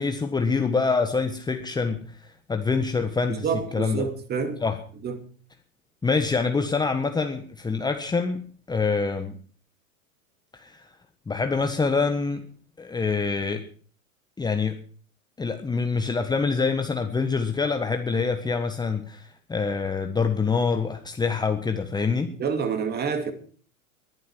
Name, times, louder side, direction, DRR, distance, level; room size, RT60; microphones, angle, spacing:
voice 1, 0.0-3.5 3.7-4.1 4.6-4.8 6.0-8.4 8.7-9.4 10.5-10.9 11.3-12.4 12.8-13.6 14.4-14.8 15.4-22.3, left 4 dB, 10° left, 1.4 m, -25 dB
voice 2, 3.3-4.7 5.0-5.3 22.4-23.3, right 6 dB, 25° right, 2.6 m, -28 dB
20.0 x 11.5 x 4.6 m
hypercardioid pair, 100°, 42 cm